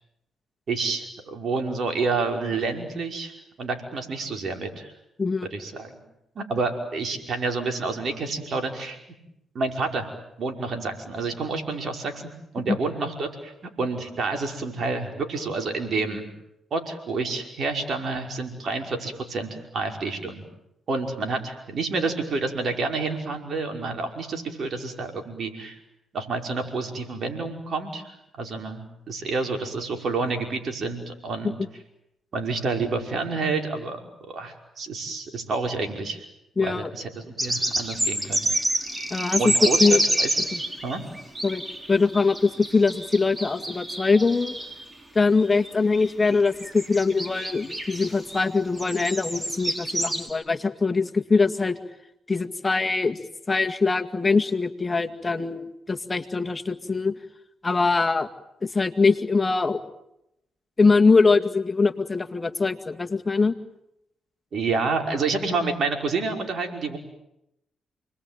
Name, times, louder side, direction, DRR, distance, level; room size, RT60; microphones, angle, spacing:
voice 1, 0.7-3.3 3.6-4.9 5.4-6.0 6.4-9.0 9.5-10.1 10.4-12.2 12.5-13.5 13.8-16.3 16.7-20.5 20.9-25.8 26.1-31.6 32.3-36.2 36.6-38.4 39.4-40.4 40.8-41.0 64.5-67.0, right 4 dB, 60° right, 4 dB, 5.4 m, -29 dB
voice 2, 36.6-36.9 39.1-39.4 39.8-40.0 40.5-40.6 41.4-41.6 41.9-44.6 45.1-51.8 52.3-53.2 53.5-57.1 57.6-58.3 58.6-59.8 60.8-63.5, left 4 dB, 30° left, 6 dB, 2.1 m, -22 dB
sound 1, 37.4-44.8 45.4-45.7 46.0-48.4 48.8-50.3, right 1 dB, 25° right, 4.3 m, -28 dB
29.5 x 21.0 x 9.2 m, 0.85 s
supercardioid pair, 60°, 0 cm